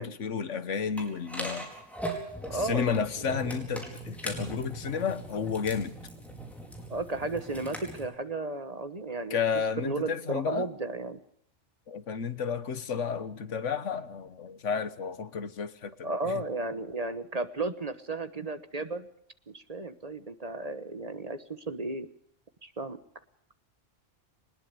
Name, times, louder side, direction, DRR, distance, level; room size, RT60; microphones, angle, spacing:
voice 1, 0.0-1.7 2.5-6.0 9.3-10.7 11.9-15.9 16.2-16.4, left 6 dB, 85° left, 1.5 m, -32 dB
sound 1, 1.0-8.0, right 1 dB, ahead, 4.6 m, -40 dB
voice 2, 2.4-3.5 6.9-9.4 9.8-11.2 16.0-19.1 19.5-22.1 22.6-23.0, right 2 dB, 35° right, 1.3 m, -34 dB
21.5 x 20.0 x 6.9 m
omnidirectional pair, 1.2 m